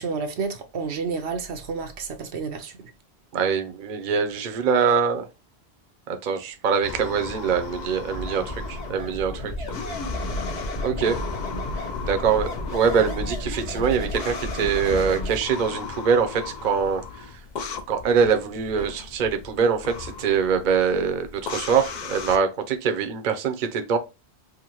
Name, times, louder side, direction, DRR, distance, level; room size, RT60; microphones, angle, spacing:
voice 1, 0.0-2.8, right 5 dB, 75° right, 0.9 m, -30 dB
voice 2, 3.3-5.3 6.1-9.5 10.8-11.2 12.0-17.4 17.9-24.0, right 6 dB, 50° right, 0.7 m, -24 dB
sound 1, 6.8-22.4, left 5 dB, 55° left, 0.6 m, -37 dB
sound 2, 8.1-15.4, left 1 dB, 70° left, 2.1 m, -32 dB
4.8 x 2.1 x 3.0 m
omnidirectional pair, 1.1 m